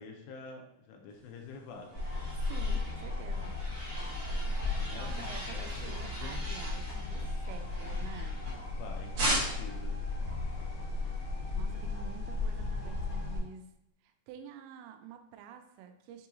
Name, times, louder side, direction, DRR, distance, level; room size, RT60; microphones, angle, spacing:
voice 1, 0.0-2.0 4.8-6.7 8.7-10.0, left 4 dB, 80° left, 2 dB, 2.6 m, -47 dB
sound 1, 1.4-8.7 9.2-9.8, right 1 dB, 75° right, 1.2 m, -39 dB
sound 2, 1.9-13.4, left 3 dB, 65° left, 1.1 m, -35 dB
voice 2, 2.3-3.6 4.9-8.4 11.5-13.7 14.0-16.3, right 8 dB, 90° right, 6 dB, 2.8 m, -49 dB
6.9 x 2.8 x 2.7 m, 0.80 s
omnidirectional pair, 5.0 m